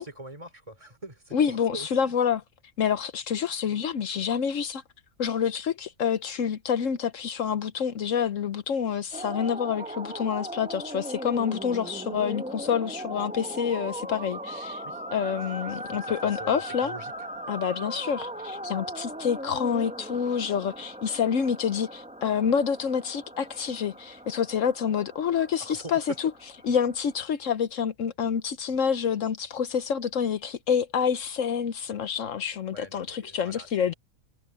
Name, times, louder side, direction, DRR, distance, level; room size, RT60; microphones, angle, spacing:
voice 1, 0.0-1.9 14.8-15.0 15.7-17.1 25.6-26.0 32.7-33.9, right 1 dB, 25° right, 3.1 m, -43 dB
voice 2, 1.3-2.4 2.8-4.8 5.2-14.8 15.1-16.9 17.5-26.3 26.6-33.9, left 7 dB, 70° left, 1.2 m, -27 dB
sound 1, 9.1-27.2, right 1 dB, 5° right, 0.9 m, -38 dB
omnidirectional pair, 1.4 m